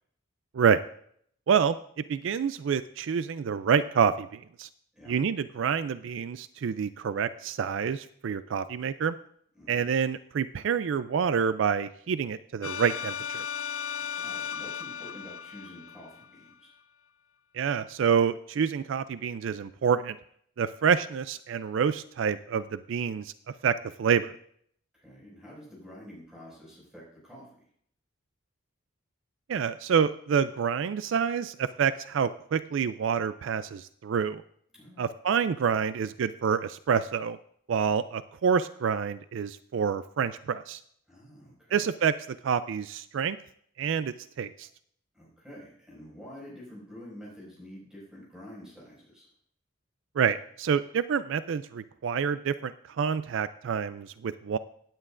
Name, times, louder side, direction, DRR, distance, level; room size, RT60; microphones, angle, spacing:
voice 1, 2.1-4.7 5.1-9.1 9.7-13.4 17.5-20.2 20.6-23.3 23.6-24.4 29.5-34.4 35.0-37.4 37.7-40.8 41.7-42.1 42.4-43.4 43.8-44.7 50.2-54.6, right 7 dB, 70° right, 13 dB, 0.3 m, -27 dB
voice 2, 9.5-9.9 14.2-16.7 24.9-27.5 34.7-35.1 41.1-41.9 45.1-49.3, equal, 5° right, -6 dB, 5.4 m, -48 dB
sound 1, 12.6-16.5, left 8 dB, 85° left, 0.5 m, -36 dB
16.5 x 9.7 x 2.5 m, 0.64 s
head